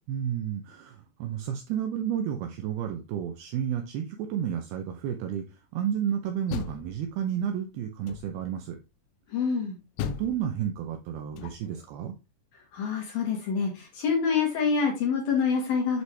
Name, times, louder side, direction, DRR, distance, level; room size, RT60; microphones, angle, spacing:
voice 1, 0.1-8.8 10.0-12.2, right 9 dB, 80° right, 5 dB, 2.3 m, -31 dB
Door, 6.2-7.5 8.0-8.6 10.0-11.9, left 10 dB, 85° left, 2.2 m, -38 dB
voice 2, 9.3-9.8 12.7-16.0, left 5 dB, 65° left, 0 dB, 3.0 m, -26 dB
7.8 x 5.4 x 3.3 m, 0.27 s
omnidirectional pair, 5.2 m